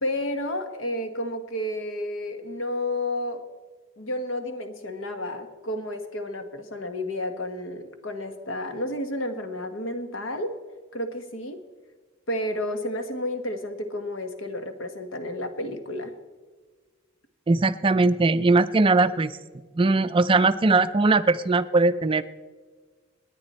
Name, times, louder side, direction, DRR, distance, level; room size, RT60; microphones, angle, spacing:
voice 1, 0.0-3.5 4.0-10.6 10.9-11.6 12.3-16.1, left 1 dB, 70° left, 7 dB, 1.4 m, -31 dB
voice 2, 17.5-19.3 19.7-22.2, right 3 dB, 25° right, 12 dB, 0.4 m, -20 dB
28.5 x 9.9 x 4.3 m, 1.4 s
head